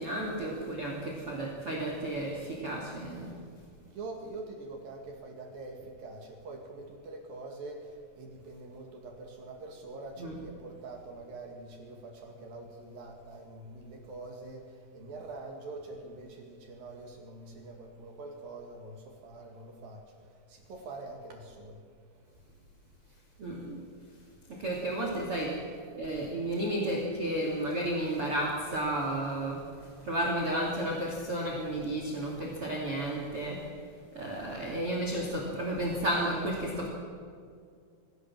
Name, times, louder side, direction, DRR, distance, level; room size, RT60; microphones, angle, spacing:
voice 1, 0.0-3.3 10.2-10.3 23.4-23.8 24.5-25.6 25.9-33.7 34.1-36.9, right 1 dB, 35° right, -1 dB, 2.7 m, -32 dB
voice 2, 4.0-5.8 6.0-6.2 6.5-7.8 8.2-9.1 9.4-10.1 10.4-14.6 14.9-19.0 19.2-20.0 20.7-21.7, right 2 dB, 55° right, 2 dB, 3.5 m, -44 dB
23.5 x 16.0 x 7.5 m, 2.2 s
omnidirectional pair, 5.5 m